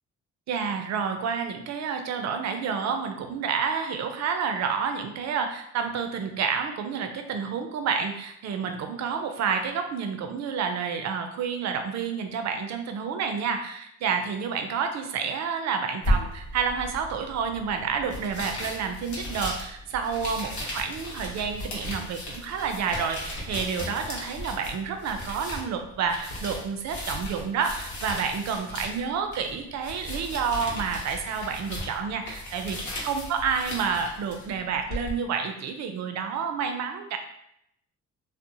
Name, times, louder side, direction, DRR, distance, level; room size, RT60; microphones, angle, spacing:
voice 1, 0.5-37.2, right 6 dB, 65° right, 6 dB, 0.5 m, -29 dB
sound 1, 16.0-35.1, equal, 70° left, 0.9 m, -35 dB
2.8 x 2.0 x 2.5 m, 0.76 s
cardioid pair, 90°, 30 cm